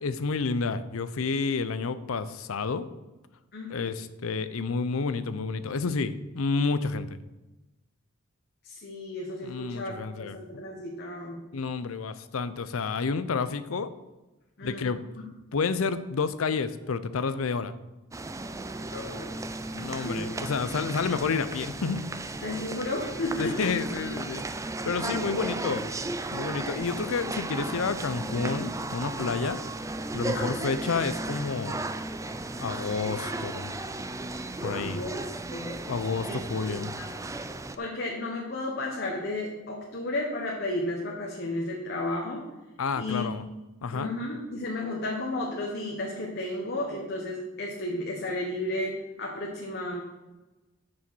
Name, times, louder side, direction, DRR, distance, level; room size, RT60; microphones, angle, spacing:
voice 1, 0.0-2.9 3.7-7.2 9.4-10.6 11.5-13.9 14.6-15.0 15.5-17.7 19.7-22.0 23.4-24.4 24.8-25.9 26.3-29.6 30.1-31.8 32.6-33.7 34.6-35.0 35.9-36.9 42.8-43.4 43.8-44.1, left 4 dB, 90° left, 13 dB, 0.6 m, -30 dB
voice 2, 8.6-11.4 14.6-14.9 18.9-19.4 20.0-20.4 22.4-23.7 24.9-25.5 30.3-30.6 34.6-35.3 35.5-35.7 36.2-36.3 36.7-37.1 37.8-42.4 43.0-43.3 43.9-48.9 49.2-50.0, left 2 dB, 55° left, -1 dB, 1.2 m, -33 dB
sound 1, 18.1-37.8, right 2 dB, 15° right, 0.4 m, -35 dB
7.3 x 6.3 x 6.1 m, 1.1 s
head